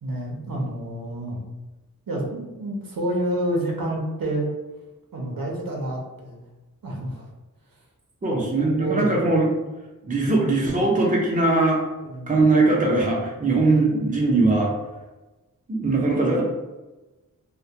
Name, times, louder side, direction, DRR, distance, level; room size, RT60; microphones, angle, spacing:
voice 1, 0.0-1.4 2.1-4.5 5.1-6.4 6.8-7.2 8.2-9.4 10.0-10.2 10.6-10.8 12.0-12.3 15.8-16.0, right 1 dB, 80° right, -1 dB, 0.6 m, -29 dB
voice 2, 8.2-9.5 10.1-11.8 12.3-14.7 15.7-16.4, right 2 dB, 25° right, -2 dB, 0.5 m, -20 dB
2.2 x 2.1 x 2.7 m, 1.1 s
wide cardioid pair, 55°, 34 cm